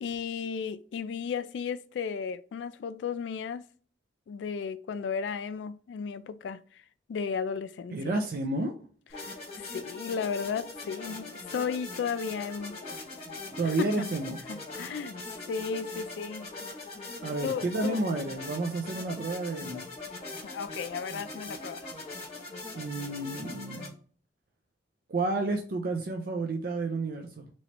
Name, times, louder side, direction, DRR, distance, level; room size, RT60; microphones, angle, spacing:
voice 1, 0.0-3.6 4.3-6.8 7.1-8.2 9.2-12.8 13.6-14.1 14.5-15.2 15.5-16.5 17.4-18.0 20.4-21.9, left 6 dB, 80° left, 0.3 m, -34 dB
voice 2, 7.9-8.7 13.5-14.4 17.2-19.9 22.8-23.9 25.1-27.5, right 2 dB, 55° right, 0.5 m, -31 dB
sound 1, 9.1-23.9, left 3 dB, 35° left, 1.2 m, -41 dB
3.0 x 2.9 x 4.3 m
head